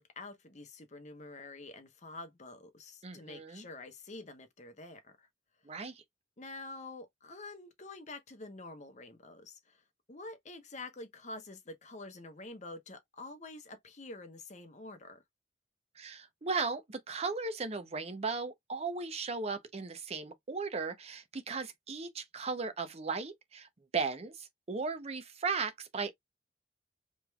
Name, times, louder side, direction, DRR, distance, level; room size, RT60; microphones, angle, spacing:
voice 1, 0.0-5.3 6.4-9.8 10.1-15.2, left 2 dB, 40° left, 1.0 m, -47 dB
voice 2, 3.0-3.7 5.6-6.0 16.0-23.7 23.9-26.1, right 4 dB, 35° right, 0.6 m, -36 dB
5.0 x 3.2 x 2.3 m
head